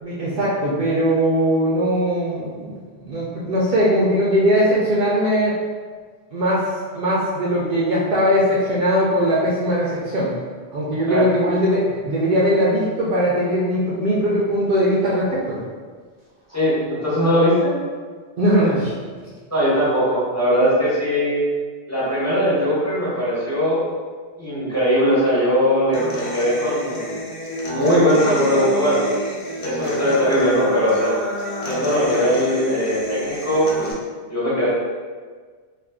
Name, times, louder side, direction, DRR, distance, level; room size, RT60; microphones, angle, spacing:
voice 1, 0.0-2.8 3.0-5.5 6.3-6.7 6.9-10.3 10.7-15.6 18.4-18.9, equal, 60° right, -6 dB, 0.7 m, -20 dB
voice 2, 16.5-17.7 19.5-21.4 21.9-23.9 24.4-27.3 27.6-29.0 29.6-31.2 31.7-33.9 34.3-34.7, equal, 15° left, -10 dB, 1.0 m, -20 dB
Human voice / Acoustic guitar, 25.9-33.9, left 1 dB, 65° left, 0.8 m, -28 dB
2.4 x 2.4 x 3.4 m, 1.5 s
omnidirectional pair, 1.1 m